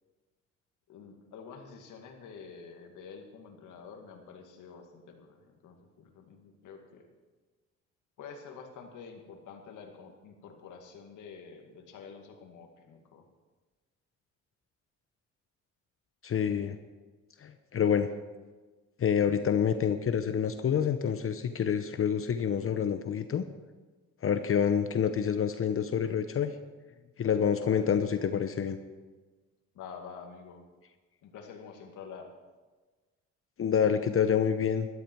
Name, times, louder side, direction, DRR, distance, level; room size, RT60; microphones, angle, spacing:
voice 1, 0.9-7.1 8.2-13.3 24.3-24.6 27.6-27.9 29.7-30.6 31.2-32.3, left 6 dB, 85° left, 3 dB, 2.2 m, -48 dB
voice 2, 16.2-16.8 17.4-18.1 19.0-23.4 24.2-26.5 27.2-28.8 33.6-34.9, left 8 dB, 45° left, 9 dB, 0.8 m, -27 dB
13.5 x 13.0 x 4.6 m, 1.3 s
cardioid pair, 90°, 30 cm